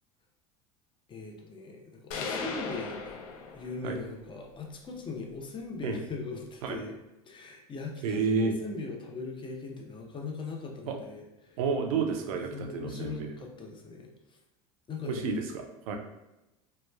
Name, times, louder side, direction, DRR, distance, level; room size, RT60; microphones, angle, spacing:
voice 1, 1.1-3.2 3.5-6.9 7.3-11.6 12.3-14.4 14.9-15.3, left 3 dB, 25° left, 1 dB, 0.6 m, -40 dB
sound 1, 2.1-4.1, left 4 dB, 75° left, 0.4 m, -37 dB
voice 2, 8.0-8.5 10.9-11.0 11.6-13.3 15.0-16.0, right 4 dB, 75° right, 3 dB, 0.5 m, -30 dB
2.9 x 2.2 x 2.2 m, 0.94 s
hypercardioid pair, 80°, 19 cm